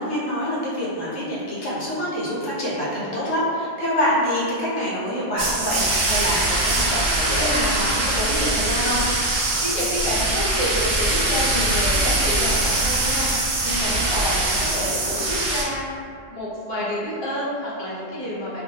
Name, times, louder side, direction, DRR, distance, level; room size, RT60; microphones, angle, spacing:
voice 1, 0.0-9.1, equal, 70° left, -6 dB, 0.9 m, -26 dB
sound 1, 5.4-15.6, right 2 dB, 80° right, 0.9 m, -22 dB
voice 2, 9.6-15.8 16.3-18.6, left 1 dB, 35° left, -8 dB, 0.4 m, -28 dB
2.5 x 2.2 x 2.7 m, 2.2 s
omnidirectional pair, 1.3 m